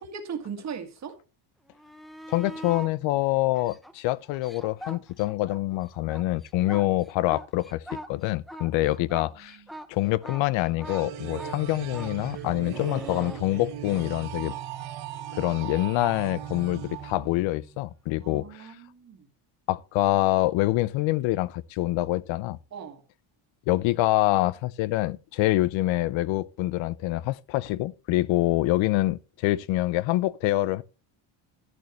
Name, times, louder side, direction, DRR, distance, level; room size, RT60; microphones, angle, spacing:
voice 1, 0.0-1.2 9.0-9.1 9.4-9.7 11.3-11.5 12.7-12.9 18.2-19.3 22.7-23.0, right 6 dB, 35° right, 1.8 m, -39 dB
sound 1, 1.7-2.9 3.5-5.6 5.9-14.1 16.9-17.0, right 1 dB, ahead, 0.5 m, -42 dB
voice 2, 2.3-9.6 9.9-14.5 15.3-18.8 19.7-22.6 23.7-30.8, left 17 dB, 65° left, 0.6 m, -26 dB
sound 2, 10.8-17.8, right 10 dB, 75° right, 1.9 m, -38 dB
11.0 x 11.0 x 3.0 m
cardioid pair, 165°, 49 cm